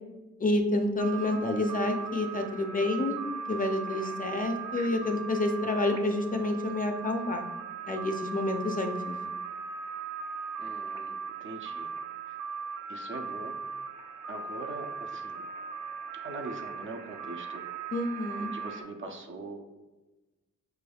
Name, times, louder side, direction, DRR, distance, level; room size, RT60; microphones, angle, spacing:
voice 1, 0.4-3.2 3.5-7.4 7.9-9.2 17.9-18.5, left 2 dB, 30° left, 4 dB, 0.4 m, -29 dB
sound 1, 1.0-18.8, right 5 dB, 80° right, 0.7 m, -39 dB
voice 2, 10.6-11.2 11.4-11.9 12.3-12.4 12.9-13.6 14.3-15.4 16.2-17.6 18.4-19.8, right 2 dB, 45° right, 4 dB, 0.5 m, -42 dB
6.7 x 3.4 x 2.3 m, 1.1 s
wide cardioid pair, 135°, 29 cm